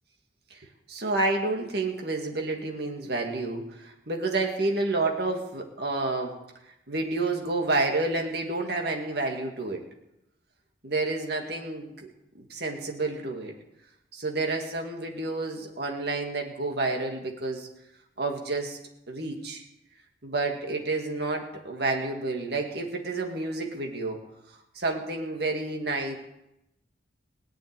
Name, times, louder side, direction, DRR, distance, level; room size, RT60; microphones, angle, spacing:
voice 1, 0.9-6.3 6.9-9.8 10.8-12.1 12.3-13.5 14.1-17.7 18.2-18.8 19.1-19.6 20.2-24.2 24.7-26.2, right 2 dB, 60° right, 2 dB, 2.3 m, -29 dB
18.0 x 6.3 x 9.7 m, 0.87 s
head